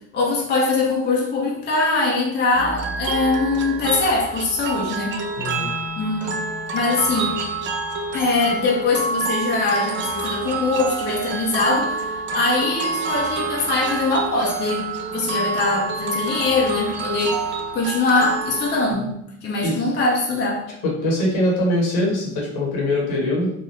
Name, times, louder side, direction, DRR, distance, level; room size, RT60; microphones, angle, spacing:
voice 1, 0.1-5.2 6.0-6.4 6.7-7.4 8.1-19.1 19.4-20.6, left 3 dB, 25° left, -3 dB, 0.7 m, -22 dB
sound 1, 2.5-18.9, right 3 dB, 30° right, 0.4 m, -27 dB
voice 2, 5.4-5.7 19.6-19.8 20.8-23.5, left 1 dB, 60° left, -2 dB, 1.2 m, -22 dB
3.2 x 2.2 x 2.9 m, 0.78 s
hypercardioid pair, 65°, 41 cm